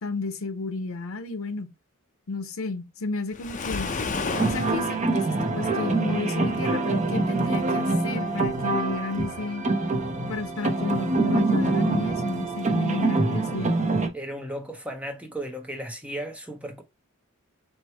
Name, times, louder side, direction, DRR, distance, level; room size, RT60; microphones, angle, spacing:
voice 1, 0.0-1.7 2.3-3.9 4.5-9.6 10.3-13.8, left 3 dB, 75° left, 0.7 m, -32 dB
Waves surf, 3.3-4.8, left 4 dB, 35° left, 0.6 m, -30 dB
sound 1, 4.3-14.1, right 2 dB, 35° right, 0.7 m, -25 dB
voice 2, 14.1-16.8, right 1 dB, 5° right, 0.8 m, -35 dB
4.5 x 2.2 x 4.4 m
head